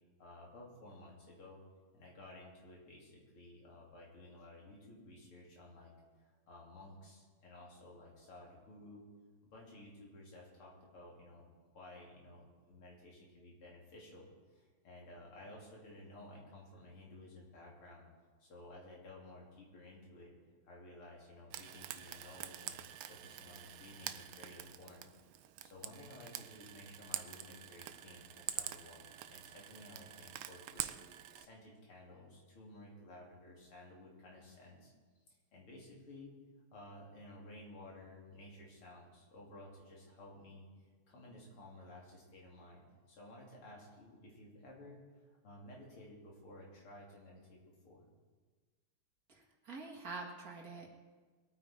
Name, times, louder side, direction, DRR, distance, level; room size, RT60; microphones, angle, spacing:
voice 1, 0.2-1.6 1.9-5.9 6.2-9.1 9.5-11.5 11.7-18.1 18.4-20.3 20.6-22.8 23.1-25.1 25.3-34.9 35.5-36.4 36.7-40.7 41.1-48.0, left 1 dB, 90° left, -2 dB, 3.9 m, -55 dB
Frying (food), 21.5-31.5, right 12 dB, 80° right, 1.5 m, -46 dB
voice 2, 49.3-51.0, right 3 dB, 45° right, -1 dB, 2.2 m, -46 dB
22.0 x 9.1 x 4.5 m, 1.4 s
omnidirectional pair, 2.4 m